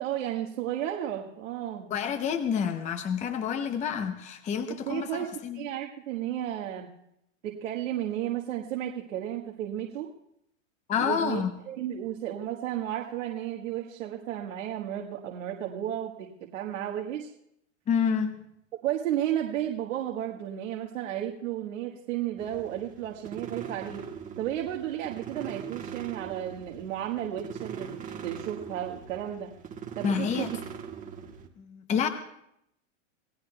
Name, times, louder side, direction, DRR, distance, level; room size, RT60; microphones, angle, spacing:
voice 1, 0.0-1.9 4.6-6.9 7.4-10.1 11.0-17.3 18.8-24.0 24.4-29.5 30.0-30.6, right 11 dB, 75° right, 1 dB, 1.6 m, -33 dB
voice 2, 1.9-5.7 10.9-11.5 17.9-18.4 30.0-30.5 31.6-32.1, left 7 dB, 20° left, 8 dB, 0.7 m, -28 dB
sound 1, 22.4-31.5, right 7 dB, 20° right, 1.2 m, -41 dB
27.0 x 16.5 x 2.3 m, 0.77 s
supercardioid pair, 135°, 38 cm